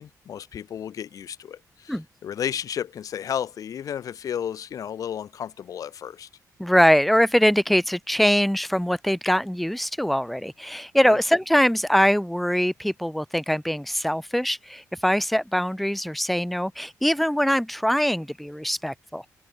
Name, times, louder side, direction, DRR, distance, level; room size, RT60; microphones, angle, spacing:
voice 1, 0.0-2.0 2.2-6.3 11.0-11.2, left 9 dB, 60° left, 1.9 m, -32 dB
voice 2, 6.6-19.3, equal, ahead, 2.2 m, -22 dB
wide cardioid pair, 170°, 7 cm